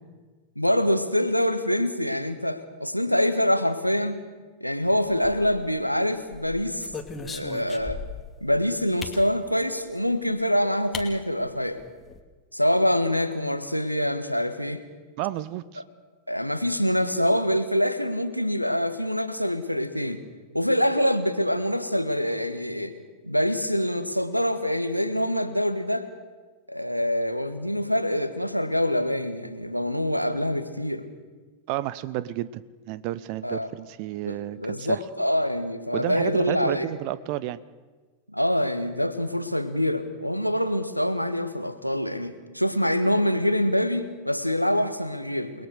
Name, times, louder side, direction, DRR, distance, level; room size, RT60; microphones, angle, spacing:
voice 1, 0.6-4.2 4.6-6.9 7.1-8.0 8.4-11.8 12.5-14.8 16.3-20.2 20.5-22.9 23.2-26.1 26.7-31.1 33.4-33.7 34.3-36.9 38.3-45.7, equal, 90° left, 10 dB, 1.6 m, -25 dB
flipping a switch, 5.1-5.8 6.3-8.3 9.0-9.3 10.4-10.5 10.9-11.1 11.4-11.5 11.8-12.2, left 4 dB, 15° left, 2.4 m, -38 dB
voice 2, 15.2-15.8 31.7-32.6 32.9-35.0 35.9-37.6, right 14 dB, 45° right, 17 dB, 0.9 m, -31 dB
29.0 x 20.5 x 6.7 m, 1.3 s
figure-of-eight pair, 90°, 0 cm